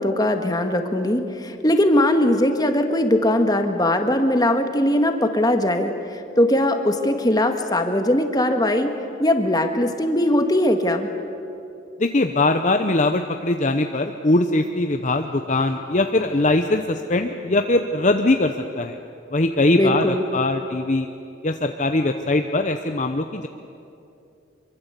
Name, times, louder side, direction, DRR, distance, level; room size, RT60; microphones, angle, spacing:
voice 1, 0.0-8.9 9.2-11.1 19.7-20.2, left 1 dB, 20° left, 6 dB, 1.7 m, -20 dB
voice 2, 12.0-19.0 19.3-21.1 21.4-23.5, left 2 dB, 40° left, 6 dB, 0.8 m, -21 dB
25.0 x 23.5 x 8.3 m, 2.6 s
head